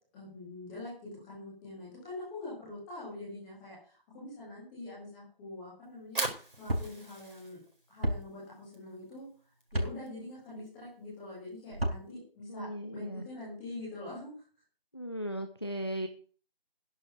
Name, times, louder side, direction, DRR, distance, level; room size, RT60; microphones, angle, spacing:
voice 1, 0.1-7.6 7.9-9.3 9.7-14.3, left 2 dB, ahead, -9 dB, 1.9 m, -44 dB
Fire, 5.9-12.1, right 2 dB, 60° right, 4.7 m, -42 dB
sound 1, 6.7-6.9 8.0-8.2 9.7-9.9 11.7-12.0, equal, 85° right, 4.9 m, -30 dB
voice 2, 12.5-13.2 14.9-16.1, equal, 25° left, 7 dB, 0.8 m, -37 dB
11.0 x 6.6 x 9.1 m, 0.40 s
figure-of-eight pair, 170°, 29 cm